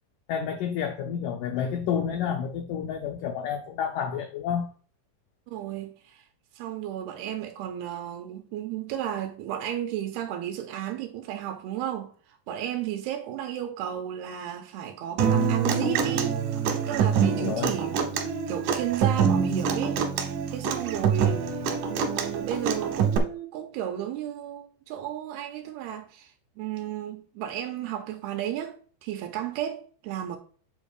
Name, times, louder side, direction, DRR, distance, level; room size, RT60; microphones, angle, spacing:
voice 1, 0.3-4.7 17.4-17.7, left 8 dB, 85° left, 1.8 m, -30 dB
voice 2, 5.5-6.2 6.6-12.1 12.5-16.4 16.9-18.1 18.5-21.6 21.9-30.4, right 11 dB, 85° right, 2.7 m, -33 dB
Human voice / Acoustic guitar, 15.2-23.2, right 6 dB, 70° right, 2.4 m, -25 dB
8.1 x 7.2 x 2.3 m
omnidirectional pair, 4.6 m